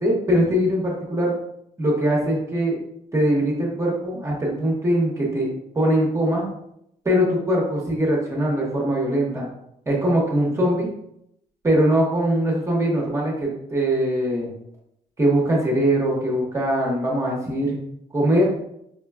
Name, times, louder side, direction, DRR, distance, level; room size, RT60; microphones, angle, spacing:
voice 1, 0.0-1.4 1.8-2.8 3.1-6.4 7.0-9.5 9.9-10.9 11.6-14.5 15.2-17.8 18.1-18.5, equal, 20° right, -3 dB, 0.8 m, -21 dB
4.8 x 2.1 x 2.2 m, 0.78 s
cardioid pair, 115°, 15 cm